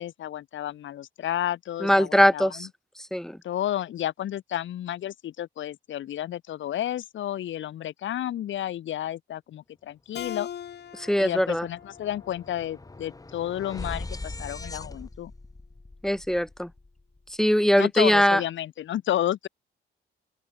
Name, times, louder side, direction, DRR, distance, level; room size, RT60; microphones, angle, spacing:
voice 1, 0.0-2.7 3.4-10.5 11.2-15.3 17.8-19.5, left 12 dB, 75° left, 3.6 m, -31 dB
voice 2, 1.8-2.7 3.1-3.4 10.9-11.7 16.0-16.7 17.4-18.4, equal, ahead, 0.8 m, -21 dB
Keyboard (musical), 10.1-13.4, left 9 dB, 55° left, 1.8 m, -42 dB
sound 1, 10.6-10.8 11.1-17.3, left 2 dB, 15° left, 7.7 m, -41 dB
open air
cardioid pair, 90°, 20 cm